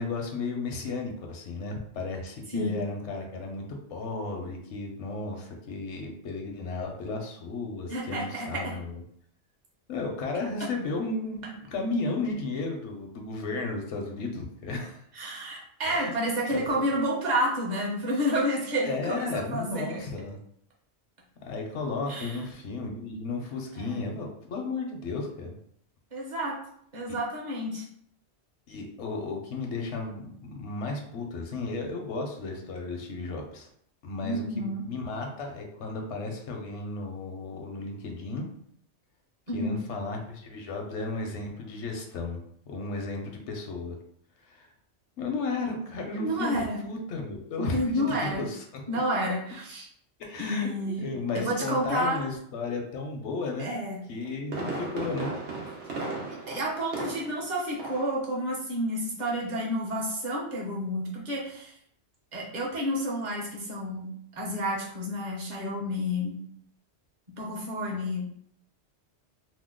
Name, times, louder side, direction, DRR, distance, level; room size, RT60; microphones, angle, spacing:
voice 1, 0.0-9.0 9.9-15.0 15.8-16.1 16.5-16.8 18.8-20.4 21.4-25.6 27.1-27.2 28.7-33.7 34.0-38.5 39.5-44.0 44.4-44.7 45.2-48.1 48.4-48.8 50.2-53.8 54.1-55.3, left 3 dB, 80° left, 2 dB, 1.0 m, -34 dB
voice 2, 7.9-8.8 15.1-20.0 22.1-22.4 23.7-24.0 26.1-26.6 26.9-27.8 34.2-34.8 39.5-39.8 46.1-46.8 47.6-48.4 48.9-49.9 50.4-51.1 51.3-52.2 53.6-54.0 56.5-61.7 62.3-64.1 64.4-66.4 67.4-68.3, equal, 45° right, -3 dB, 0.9 m, -30 dB
Fireworks, 54.0-57.5 57.8-58.2 58.5-58.6, right 3 dB, 85° right, 1.0 m, -35 dB
2.9 x 2.0 x 3.6 m, 0.67 s
omnidirectional pair, 1.1 m